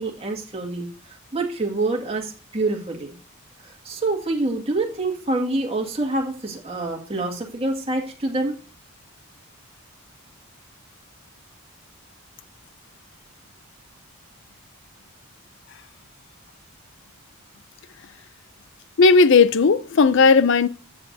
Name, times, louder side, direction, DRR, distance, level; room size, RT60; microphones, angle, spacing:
voice 1, 0.0-3.2 3.6-8.6, right 2 dB, 25° right, 2.0 m, -26 dB
voice 2, 19.0-20.7, left 4 dB, 55° left, 0.5 m, -15 dB
14.5 x 9.0 x 2.7 m
head